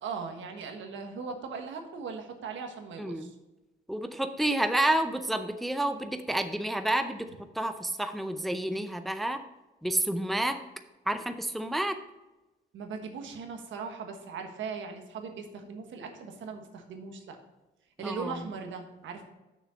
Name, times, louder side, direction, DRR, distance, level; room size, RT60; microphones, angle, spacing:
voice 1, 0.0-3.3 12.7-17.4 18.0-19.2, right 5 dB, 75° right, 4 dB, 1.4 m, -39 dB
voice 2, 3.0-3.3 3.9-7.3 7.6-9.4 9.8-10.6 11.1-12.0 18.0-18.3, right 1 dB, ahead, 8 dB, 0.6 m, -29 dB
6.6 x 6.4 x 5.1 m, 1.1 s
cardioid pair, 90°, 20 cm